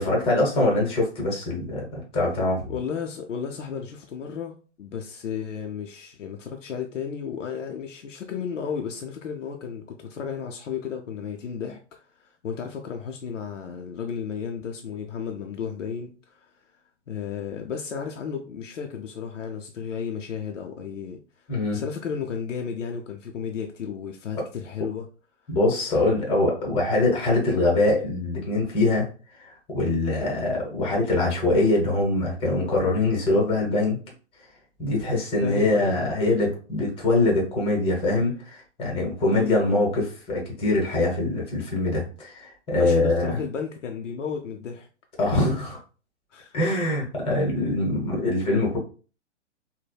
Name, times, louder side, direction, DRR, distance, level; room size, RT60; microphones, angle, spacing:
voice 1, 0.0-2.8 21.5-21.8 24.3-24.4 25.5-29.0 29.4-34.0 34.8-43.4 45.2-45.8 46.5-48.8, left 2 dB, 15° left, 0.8 m, -23 dB
voice 2, 2.7-16.5 17.1-21.5 21.7-25.1 35.4-36.3 39.3-39.6 42.8-44.9 46.3-46.6, left 7 dB, 90° left, 0.5 m, -33 dB
3.4 x 2.0 x 2.2 m
figure-of-eight pair, 125°, 36 cm